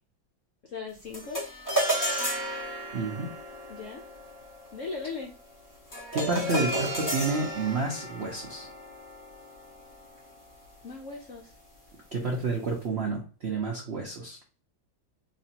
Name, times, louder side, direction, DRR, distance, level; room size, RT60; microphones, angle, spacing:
voice 1, 0.7-1.5 3.7-4.0 4.7-5.3 10.8-11.5, left 4 dB, 75° left, 0 dB, 0.7 m, -38 dB
sound 1, 1.1-10.6, right 1 dB, 30° left, 0.3 m, -33 dB
voice 2, 2.9-3.3 6.1-8.7 12.1-14.4, right 3 dB, 85° right, 0 dB, 0.5 m, -30 dB
4.2 x 2.9 x 2.8 m, 0.36 s
omnidirectional pair, 2.2 m